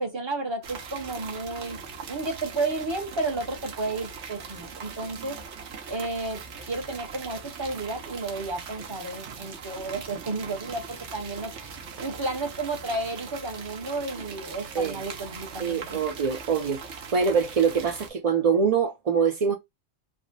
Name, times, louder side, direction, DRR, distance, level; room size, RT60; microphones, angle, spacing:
voice 1, 0.0-1.8 2.1-5.4 5.9-6.4 6.7-11.5 12.0-16.0, right 2 dB, 25° right, 0.7 m, -32 dB
sound 1, 0.6-18.1, right 6 dB, 80° right, 1.0 m, -41 dB
voice 2, 15.6-19.5, right 6 dB, 60° right, 0.4 m, -24 dB
3.4 x 2.1 x 2.5 m
omnidirectional pair, 1.2 m